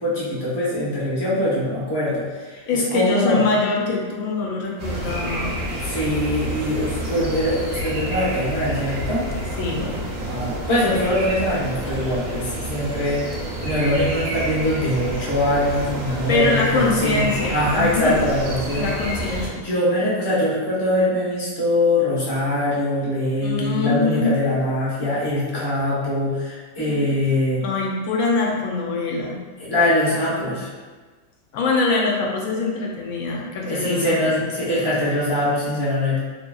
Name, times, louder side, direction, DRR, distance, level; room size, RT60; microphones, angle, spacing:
voice 1, 0.0-3.4 5.8-9.2 10.3-13.2 13.6-18.8 19.4-27.6 29.6-30.7 33.6-36.2, left 1 dB, 25° left, -8 dB, 0.6 m, -22 dB
voice 2, 2.7-5.6 9.6-10.1 16.3-18.2 18.7-19.5 23.4-24.3 26.9-27.1 27.6-29.4 31.5-34.4, left 3 dB, 75° left, -2 dB, 1.0 m, -23 dB
sound 1, 4.8-19.5, right 1 dB, 55° right, 0.7 m, -29 dB
2.8 x 2.6 x 2.2 m, 1.4 s
omnidirectional pair, 1.5 m